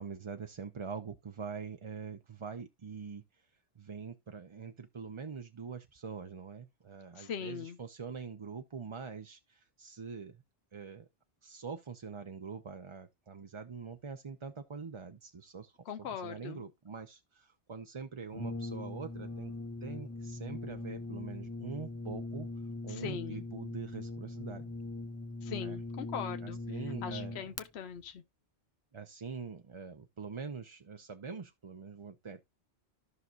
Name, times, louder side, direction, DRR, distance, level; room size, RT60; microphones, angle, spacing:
voice 1, 0.0-3.5 3.8-10.4 10.7-11.1 11.4-19.5 19.8-22.5 22.8-24.7 25.6-25.8 26.4-27.5 28.9-32.4, right 5 dB, 35° right, 0.5 m, -44 dB
voice 2, 7.2-7.8 15.9-16.6 22.9-23.4 25.4-26.6 27.0-28.2, left 7 dB, 70° left, 1.1 m, -40 dB
Brass instrument, 18.3-27.7, left 2 dB, 20° left, 0.5 m, -41 dB
14.5 x 5.9 x 2.4 m
omnidirectional pair, 1.1 m